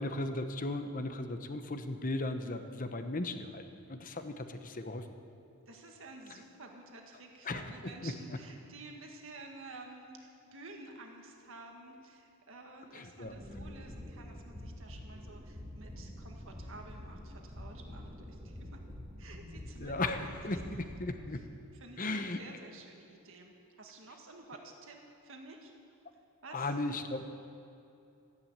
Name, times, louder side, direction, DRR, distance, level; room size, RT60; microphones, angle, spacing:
voice 1, 0.0-5.0 7.5-7.6 8.0-8.1 12.9-13.3 19.8-21.5 22.0-22.4 26.5-27.3, left 2 dB, 40° left, 7 dB, 1.0 m, -36 dB
voice 2, 5.7-18.8 19.2-20.9 21.3-21.4 21.7-25.0 25.2-25.7 26.1-26.8, right 2 dB, 65° right, 2 dB, 1.8 m, -51 dB
sound 1, 13.2-21.0, left 1 dB, 20° right, 1.9 m, -47 dB
14.0 x 10.5 x 8.8 m, 2.6 s
head